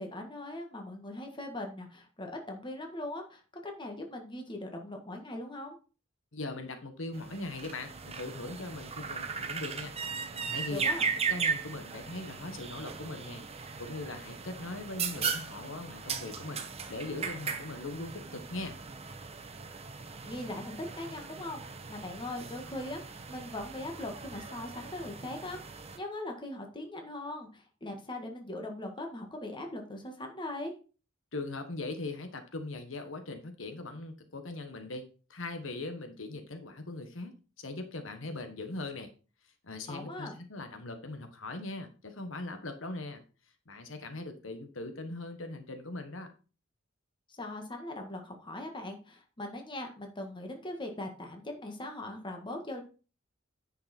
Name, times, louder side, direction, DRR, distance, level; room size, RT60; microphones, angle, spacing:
voice 1, 0.0-5.8 10.7-11.1 20.1-21.6 21.9-30.7 39.9-40.3 47.3-52.8, left 1 dB, 25° left, 3 dB, 1.7 m, -40 dB
voice 2, 6.3-9.9 10.4-11.0 11.3-13.4 13.8-18.7 31.3-35.0 35.3-39.1 39.6-43.2 43.7-46.3, left 2 dB, 85° left, 7 dB, 1.4 m, -40 dB
sound 1, 7.1-26.0, right 5 dB, 30° right, 1.0 m, -38 dB
9.9 x 5.6 x 4.3 m, 0.35 s
head